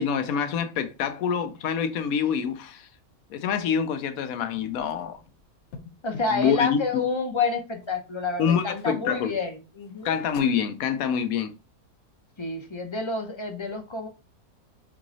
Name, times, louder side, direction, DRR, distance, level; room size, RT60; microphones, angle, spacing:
voice 1, 0.0-2.9 3.3-5.2 6.3-7.1 8.4-9.4 10.0-11.5, left 7 dB, 85° left, 1.0 m, -26 dB
sound 1, 4.6-6.5 7.8-7.9 8.4-8.9 9.3-9.5 9.9-10.6, left 5 dB, 60° left, 0.8 m, -46 dB
voice 2, 6.0-10.2 12.4-14.1, left 4 dB, 40° left, 0.4 m, -29 dB
4.6 x 3.0 x 2.6 m
omnidirectional pair, 1.5 m